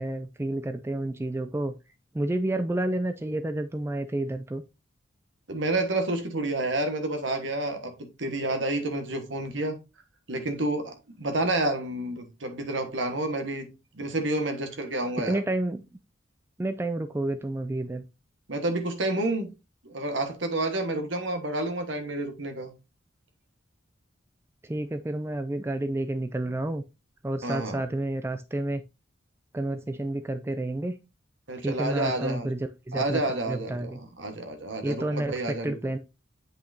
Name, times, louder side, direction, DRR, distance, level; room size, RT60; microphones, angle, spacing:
voice 1, 0.0-1.8 2.1-4.6 15.3-15.8 16.6-18.0 24.6-26.8 27.2-28.8 29.5-31.0 31.6-34.0 34.8-36.0, right 1 dB, 15° right, 0.3 m, -30 dB
voice 2, 5.5-9.8 10.3-13.7 13.9-15.4 18.5-19.5 19.8-22.7 27.4-27.8 31.5-32.6 32.9-33.9 34.2-35.8, right 2 dB, 75° right, 1.4 m, -29 dB
7.9 x 5.7 x 2.6 m
head